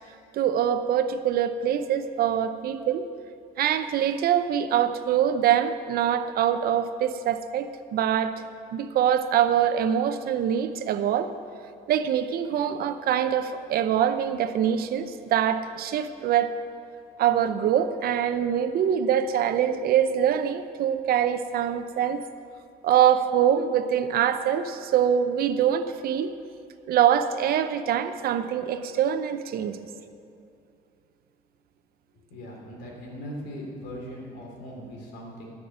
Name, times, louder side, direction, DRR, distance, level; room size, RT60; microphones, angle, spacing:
voice 1, 0.3-3.1 3.6-8.4 8.7-11.3 11.9-16.5 17.2-22.2 22.8-26.3 26.9-29.8, right 9 dB, 65° right, 10 dB, 0.7 m, -24 dB
voice 2, 32.3-35.5, equal, 85° left, -1 dB, 3.1 m, -39 dB
13.0 x 6.0 x 8.7 m, 2.6 s
cardioid pair, 110°, 17 cm